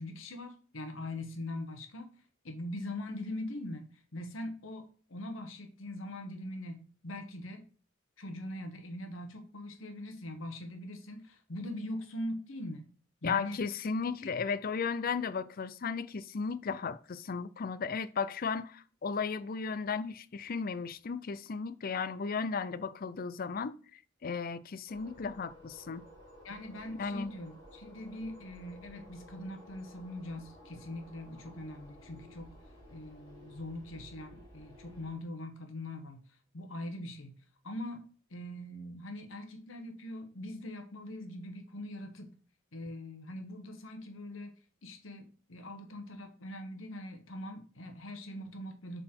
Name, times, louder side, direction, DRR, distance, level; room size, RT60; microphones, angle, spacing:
voice 1, 0.0-2.1 2.4-7.7 8.2-12.9 13.2-13.6 14.0-14.3 26.4-32.5 32.9-36.3 36.5-37.4 37.6-38.0 38.3-42.4 42.7-44.5 44.8-49.0, left 1 dB, 75° left, 1.2 m, -42 dB
voice 2, 13.2-26.0 26.9-27.3, left 5 dB, 45° left, 0.5 m, -35 dB
sound 1, 24.9-35.2, equal, 25° left, 3.3 m, -54 dB
7.5 x 4.1 x 4.4 m
head